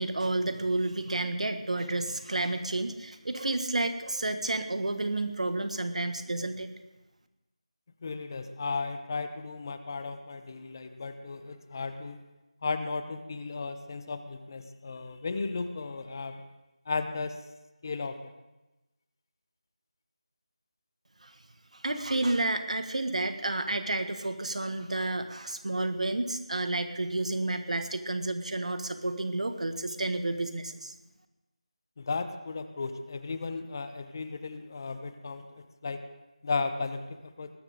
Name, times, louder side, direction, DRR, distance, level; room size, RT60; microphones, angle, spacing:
voice 1, 0.0-6.7 21.2-21.3 21.7-30.9, right 2 dB, 70° right, 8 dB, 1.7 m, -31 dB
voice 2, 8.0-12.2 12.6-16.5 16.8-17.4 17.8-18.3 32.0-36.0 36.4-37.5, left 4 dB, 35° left, 10 dB, 1.0 m, -35 dB
20.5 x 13.0 x 3.8 m, 1.0 s
figure-of-eight pair, 170°, 4 cm